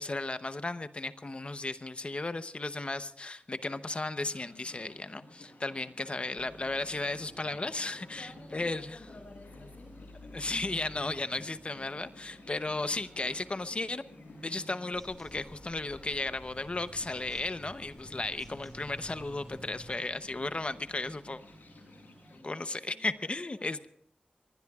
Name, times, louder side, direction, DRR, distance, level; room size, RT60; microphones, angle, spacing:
voice 1, 0.0-9.0 10.3-14.0 14.4-21.4 22.4-23.9, left 2 dB, 40° left, 11 dB, 0.8 m, -35 dB
sound 1, 3.5-22.5, left 2 dB, 85° left, 7.3 m, -54 dB
sound 2, 6.4-22.4, equal, 35° right, 3.9 m, -56 dB
voice 2, 8.1-10.1 22.3-23.8, left 2 dB, 55° left, 4 dB, 6.1 m, -53 dB
Bird vocalization bird call bird song, 14.9-19.9, equal, 5° left, 4.9 m, -51 dB
24.0 x 20.0 x 2.4 m, 0.73 s
wide cardioid pair, 100°, 3 cm